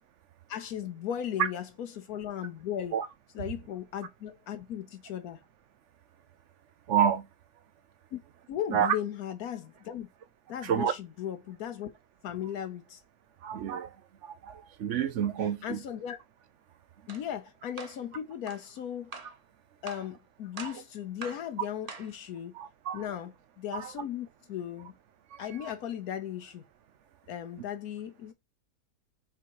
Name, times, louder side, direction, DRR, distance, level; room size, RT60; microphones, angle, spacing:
voice 1, 0.5-3.0 3.3-5.4 8.1-8.2 8.5-10.1 10.5-11.9 12.2-13.0 15.6-16.2 17.1-19.1 19.8-22.6 22.9-24.9 25.4-26.6 27.3-28.3, left 10 dB, 80° left, 1.2 m, -37 dB
voice 2, 6.9-7.3 8.7-8.9 10.6-10.9 13.4-13.9 14.2-15.8 20.6-20.7 22.5-23.0 23.7-23.9 25.3-25.7, right 9 dB, 60° right, 0.9 m, -29 dB
sound 1, 17.1-17.3 17.8-18.0 18.5-18.6 19.1-19.4 19.9-20.1 20.6-20.8 21.2-21.5 21.9-22.2, right 4 dB, 35° right, 0.8 m, -43 dB
5.9 x 4.0 x 4.7 m
omnidirectional pair, 1.6 m